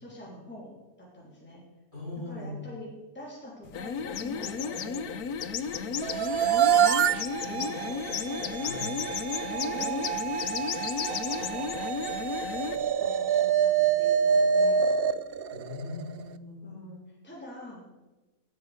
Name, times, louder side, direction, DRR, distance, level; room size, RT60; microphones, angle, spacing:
voice 1, 0.0-1.6 2.3-2.9 3.1-5.2 5.6-6.3 7.4-8.5 9.4-10.0 11.3-11.7 13.0-14.8 16.6-17.9, left 1 dB, 5° left, -5 dB, 3.3 m, -44 dB
voice 2, 1.9-2.7 8.6-8.9 15.5-16.9, left 2 dB, 30° left, -4 dB, 3.8 m, -39 dB
sound 1, 3.6-12.9, left 5 dB, 80° left, 1.4 m, -35 dB
sound 2, 4.1-5.0 5.4-6.6 6.8-7.7 8.1-11.7 12.0-12.1, left 10 dB, 55° left, 0.8 m, -34 dB
sound 3, 6.0-16.2, right 7 dB, 75° right, 0.5 m, -27 dB
17.0 x 8.2 x 5.0 m, 1.1 s
omnidirectional pair, 1.6 m